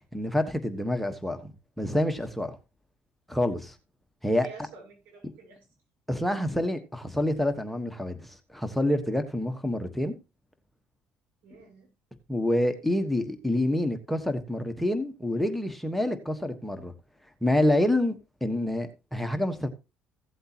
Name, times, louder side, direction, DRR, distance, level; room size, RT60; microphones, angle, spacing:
voice 1, 0.1-1.5 1.8-2.6 3.3-3.7 4.2-4.5 5.2-5.3 6.1-10.1 12.3-16.9 17.4-19.7, left 1 dB, 5° left, 1.3 m, -27 dB
voice 2, 4.4-5.6 11.4-11.9, right 5 dB, 80° right, 6.7 m, -48 dB
15.5 x 7.9 x 2.9 m
supercardioid pair, 85°, 4 cm